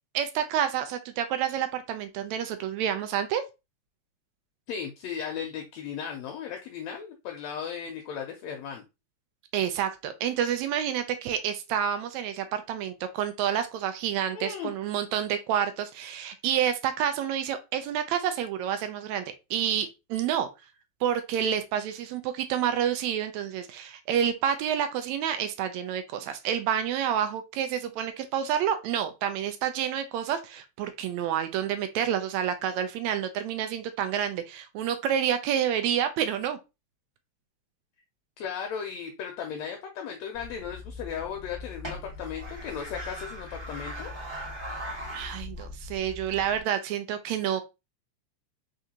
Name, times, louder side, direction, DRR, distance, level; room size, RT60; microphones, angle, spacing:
voice 1, 0.1-3.4 9.5-19.3 19.5-20.5 21.0-36.6 45.1-47.6, right 9 dB, 80° right, 9 dB, 1.7 m, -29 dB
voice 2, 4.7-8.8 14.3-14.7 38.4-44.1, left 7 dB, 75° left, 3 dB, 1.8 m, -36 dB
sound 1, 40.3-46.6, left 1 dB, 20° right, 1.8 m, -40 dB
4.4 x 3.7 x 2.8 m, 0.25 s
omnidirectional pair, 3.4 m